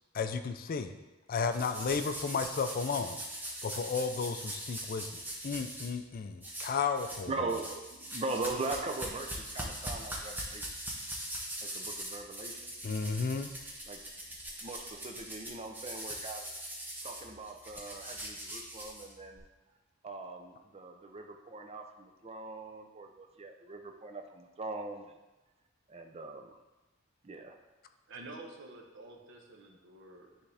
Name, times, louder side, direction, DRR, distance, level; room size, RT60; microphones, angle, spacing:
voice 1, 0.1-0.9 1.3-3.2 3.6-7.6 12.8-13.5, left 5 dB, 45° left, 8 dB, 0.4 m, -33 dB
sound 1, 1.5-5.9 6.4-7.2 7.5-19.4, right 1 dB, 10° right, 0.9 m, -41 dB
voice 2, 7.3-10.7 11.6-12.7 13.9-14.0 14.6-16.5 17.0-19.4 20.0-25.1 25.9-26.6 27.2-27.6, right 3 dB, 30° right, 4 dB, 0.5 m, -40 dB
voice 3, 28.1-30.5, right 2 dB, 65° right, 1 dB, 0.9 m, -49 dB
9.5 x 3.6 x 3.3 m, 1.1 s
head